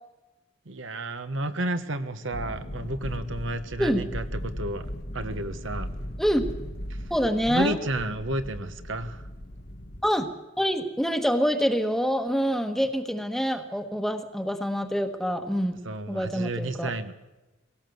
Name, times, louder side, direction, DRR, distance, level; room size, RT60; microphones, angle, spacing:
voice 1, 0.7-4.9 5.1-5.9 7.5-9.2 15.8-17.1, right 1 dB, 70° right, 9 dB, 1.3 m, -31 dB
sound 1, 2.3-10.1, equal, 50° left, 1.5 m, -37 dB
voice 2, 7.1-7.8 10.0-10.3 10.6-15.8 16.1-16.9, equal, ahead, 7 dB, 1.3 m, -26 dB
21.5 x 17.5 x 7.9 m, 1.1 s
head